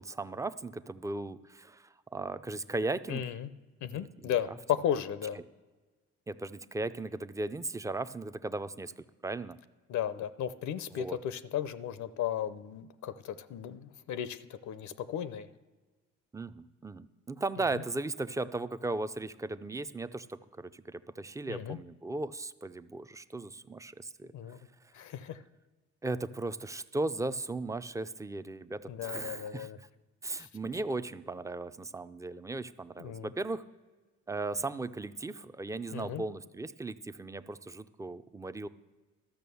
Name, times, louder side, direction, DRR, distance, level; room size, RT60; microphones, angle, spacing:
voice 1, 0.0-3.3 3.9-4.4 6.3-8.9 9.2-9.6 10.9-11.2 16.3-24.3 26.0-29.7 30.2-33.6 34.3-38.7, right 2 dB, 10° right, 13 dB, 0.4 m, -37 dB
voice 2, 3.1-3.5 3.8-5.4 9.9-15.5 21.5-21.8 24.3-24.6 24.9-25.4 28.9-29.8 30.4-30.5 33.0-33.3 35.9-36.2, left 10 dB, 70° left, 14 dB, 0.6 m, -35 dB
13.0 x 5.9 x 7.0 m, 1.3 s
cardioid pair, 90°, 30 cm